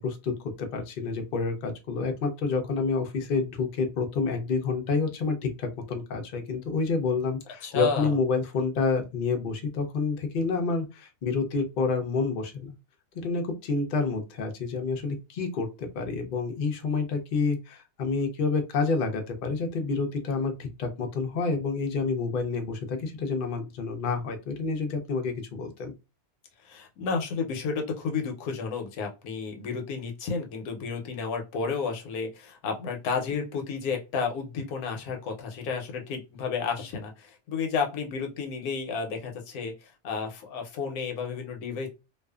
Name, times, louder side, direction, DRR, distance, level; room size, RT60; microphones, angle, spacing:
voice 1, 0.0-12.8 13.1-25.9, left 4 dB, 60° left, 0.5 m, -28 dB
voice 2, 7.6-8.1 26.6-41.9, left 5 dB, 90° left, 1.2 m, -32 dB
2.5 x 2.4 x 2.3 m
omnidirectional pair, 1.5 m